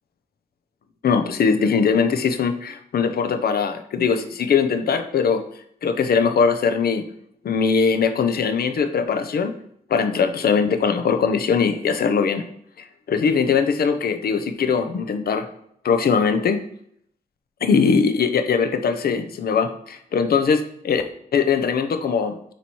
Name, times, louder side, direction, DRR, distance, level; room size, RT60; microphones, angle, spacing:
voice 1, 1.0-5.4 5.8-7.1 7.4-9.5 9.9-12.5 13.1-15.5 15.8-16.6 17.6-21.0 21.3-22.4, left 6 dB, 65° left, 7 dB, 0.6 m, -21 dB
6.9 x 3.0 x 4.5 m, 0.70 s
wide cardioid pair, 140°, 17 cm